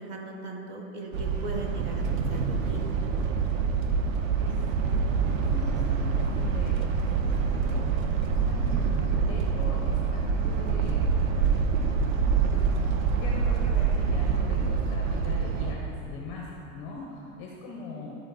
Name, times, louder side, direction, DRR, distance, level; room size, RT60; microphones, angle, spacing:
voice 1, 0.0-2.8, right 1 dB, 25° right, 1 dB, 0.7 m, -38 dB
sound 1, 1.1-15.7, right 5 dB, 70° right, 0.8 m, -26 dB
voice 2, 4.1-4.5 4.9-5.0 5.3-11.1 12.5-12.6 13.2-18.2, left 3 dB, 20° left, -2 dB, 0.4 m, -42 dB
12.0 x 4.5 x 3.9 m, 2.9 s
supercardioid pair, 175°, 42 cm